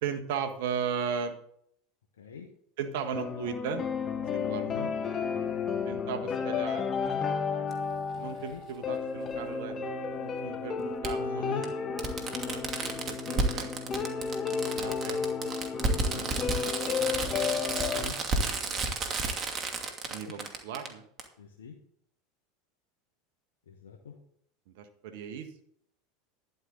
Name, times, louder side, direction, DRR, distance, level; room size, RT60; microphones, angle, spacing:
voice 1, 0.0-1.4 2.8-3.8 4.3-5.2 5.8-6.9 8.1-9.7 10.2-11.7 12.2-13.7 14.7-15.2 16.0-17.3 18.4-19.0 20.1-21.0 24.7-25.5, right 7 dB, 65° right, 8 dB, 1.5 m, -37 dB
voice 2, 2.2-2.5 4.5-4.9 5.5-5.9 8.3-8.6 11.2-11.7 15.9-16.2 17.7-18.2 20.2-20.3 21.4-21.7 23.7-24.1, left 6 dB, 80° left, 3 dB, 1.3 m, -43 dB
sound 1, 3.1-18.1, left 6 dB, 35° left, 1.7 m, -32 dB
Fireworks, 7.7-7.8 9.3-9.4 11.0-11.1 11.6-11.7 12.0-20.9 21.2-21.3, right 4 dB, 35° right, 2.6 m, -31 dB
12.5 x 11.0 x 4.0 m, 0.68 s
hypercardioid pair, 85°, 0 cm